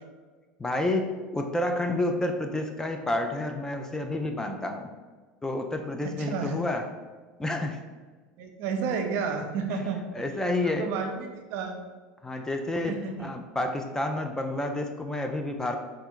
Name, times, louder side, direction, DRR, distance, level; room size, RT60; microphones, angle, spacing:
voice 1, 0.6-1.1 1.3-4.9 5.4-6.8 7.4-7.8 10.2-10.9 12.2-15.8, left 2 dB, 10° left, 4 dB, 0.4 m, -29 dB
voice 2, 6.0-6.6 8.4-10.3 10.6-11.7 12.3-12.5 12.9-13.3, right 5 dB, 60° right, 4 dB, 0.7 m, -32 dB
3.3 x 3.0 x 3.7 m, 1.4 s
supercardioid pair, 100°, 5 cm